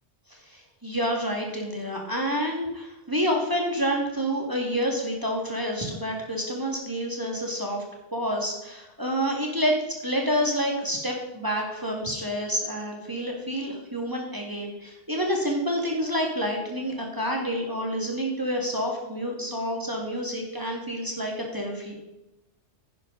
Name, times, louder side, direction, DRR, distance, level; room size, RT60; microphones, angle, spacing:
voice 1, 0.3-7.8 8.1-22.0, equal, 15° right, 0 dB, 2.0 m, -28 dB
10.5 x 10.5 x 3.9 m, 0.94 s
omnidirectional pair, 1.3 m